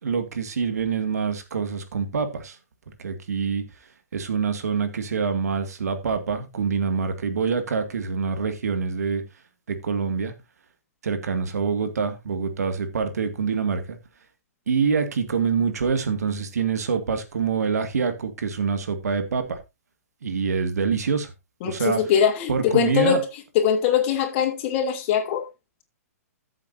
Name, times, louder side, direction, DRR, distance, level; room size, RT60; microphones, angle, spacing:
voice 1, 0.0-2.6 3.0-3.6 4.1-9.2 9.7-10.3 11.0-14.0 14.7-19.6 20.2-21.3 21.6-22.0 22.5-23.2, right 5 dB, 75° right, 2.1 m, -25 dB
voice 2, 21.6-23.3 23.5-25.4, left 8 dB, 45° left, 2.9 m, -22 dB
14.0 x 7.5 x 2.7 m
hypercardioid pair, 125°, 9 cm